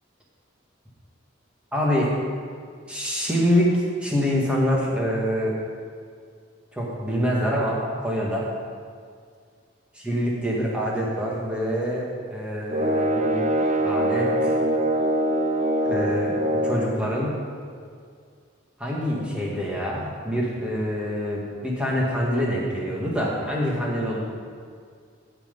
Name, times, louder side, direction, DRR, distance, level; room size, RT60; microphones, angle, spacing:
voice 1, 1.7-2.2 2.9-5.6 6.7-8.5 10.0-13.4 13.8-14.6 15.8-17.3 18.8-24.2, equal, 5° right, -4 dB, 2.0 m, -25 dB
sound 1, 12.7-17.0, right 1 dB, 35° right, 0.6 m, -23 dB
15.0 x 6.1 x 5.4 m, 2.1 s
head